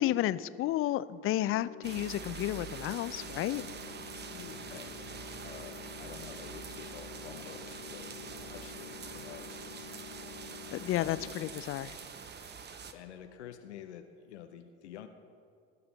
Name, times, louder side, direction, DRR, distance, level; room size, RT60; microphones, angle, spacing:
voice 1, 0.0-3.7 10.7-12.0, left 14 dB, 40° left, 17 dB, 0.4 m, -32 dB
sound 1, 1.5-11.5, left 8 dB, 60° left, 1.1 m, -49 dB
sound 2, 1.8-12.9, right 6 dB, 30° right, 0.9 m, -45 dB
voice 2, 4.3-5.1 5.4-9.6 11.0-11.5 12.9-15.1, left 9 dB, 85° left, 7 dB, 0.6 m, -49 dB
19.0 x 6.8 x 4.1 m, 2.4 s
hypercardioid pair, 65°, 33 cm